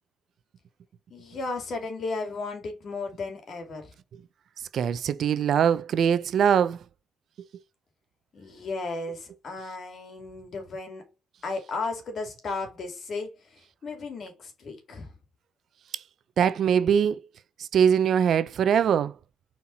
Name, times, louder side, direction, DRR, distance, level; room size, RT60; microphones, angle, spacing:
voice 1, 1.1-3.9 8.3-11.0 11.4-15.2, left 3 dB, 55° left, 2.8 m, -35 dB
voice 2, 4.7-6.8 15.9-16.0 16.4-17.2 17.6-19.2, right 8 dB, 65° right, 0.6 m, -22 dB
5.6 x 4.5 x 4.1 m
cardioid pair, 90°, 0 cm